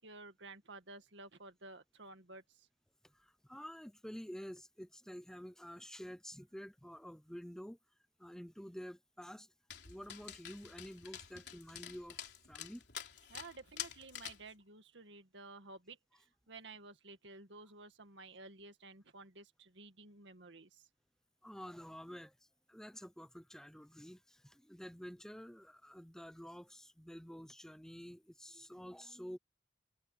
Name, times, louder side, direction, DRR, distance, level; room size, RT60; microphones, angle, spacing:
voice 1, 0.0-2.7 13.3-20.8, right 3 dB, 85° right, 2.0 m, -53 dB
voice 2, 3.0-7.8 8.2-9.5 9.9-12.8 21.4-22.4 22.7-29.4, equal, 5° left, 0.8 m, -50 dB
Dog, 9.7-14.5, left 10 dB, 70° left, 3.6 m, -48 dB
head